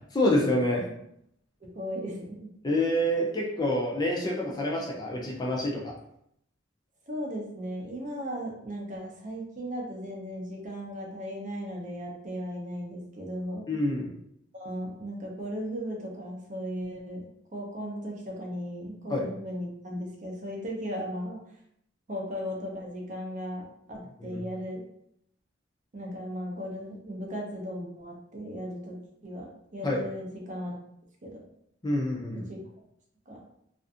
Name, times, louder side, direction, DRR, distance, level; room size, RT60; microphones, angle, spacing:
voice 1, 0.1-0.8 2.6-5.9 13.7-14.1 19.1-19.3 24.2-24.4 29.8-30.0 31.8-32.5, left 1 dB, 20° left, -1 dB, 0.4 m, -27 dB
voice 2, 1.6-2.5 7.1-13.6 14.5-17.2 17.5-21.4 22.1-24.8 25.9-29.0 29.2-30.8 31.2-31.4 32.5-32.6 33.3-33.4, equal, 40° right, -1 dB, 0.6 m, -36 dB
2.5 x 2.5 x 2.4 m, 0.74 s
head